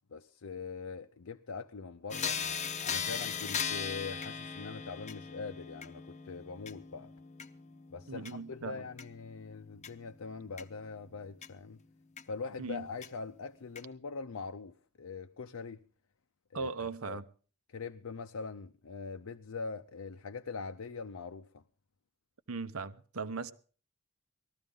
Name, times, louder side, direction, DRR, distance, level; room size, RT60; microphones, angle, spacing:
voice 1, 0.1-2.4 2.8-7.1 7.9-11.8 12.3-15.8 16.5-17.2 17.7-21.6, left 4 dB, 75° left, 0.6 m, -42 dB
sound 1, 2.1-11.5 12.2-12.3 13.0-13.1 13.8-13.9, left 6 dB, 30° left, 0.7 m, -39 dB
voice 2, 8.1-8.8 12.6-12.9 16.5-17.2 22.5-23.5, right 4 dB, 75° right, 0.9 m, -38 dB
20.0 x 14.0 x 3.8 m
head